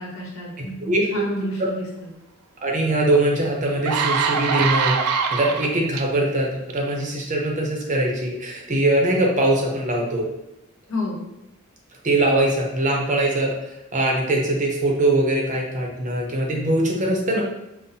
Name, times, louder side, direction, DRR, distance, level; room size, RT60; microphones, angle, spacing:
voice 1, 0.0-2.1 10.9-11.2, equal, 65° left, -4 dB, 1.0 m, -30 dB
voice 2, 0.8-1.2 2.6-5.0 5.3-10.3 12.0-17.4, right 1 dB, 35° right, -1 dB, 0.6 m, -22 dB
sound 1, 3.1-3.2 3.7-6.0 6.7-6.9, right 5 dB, 85° right, 0.4 m, -23 dB
5.3 x 2.1 x 2.7 m, 0.89 s
head